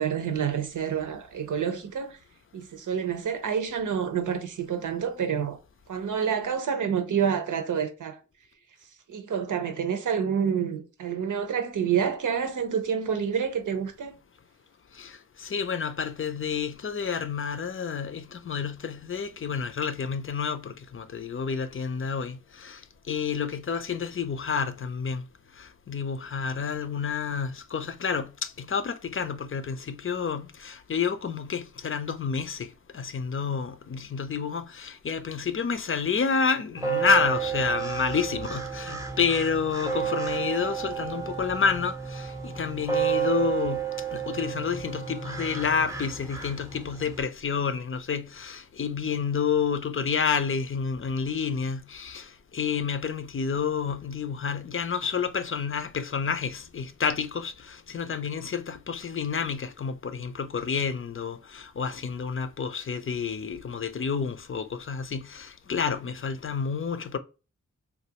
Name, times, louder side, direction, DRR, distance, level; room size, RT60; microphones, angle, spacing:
voice 1, 0.0-2.2 2.5-5.6 5.9-8.2 9.1-14.1, right 7 dB, 90° right, 0.7 m, -28 dB
voice 2, 14.9-22.8 23.1-25.3 25.5-43.9 44.1-67.2, left 6 dB, 45° left, 0.5 m, -29 dB
sound 1, 36.8-47.2, right 8 dB, 10° right, 0.6 m, -31 dB
3.1 x 2.4 x 2.8 m
wide cardioid pair, 75°, 30 cm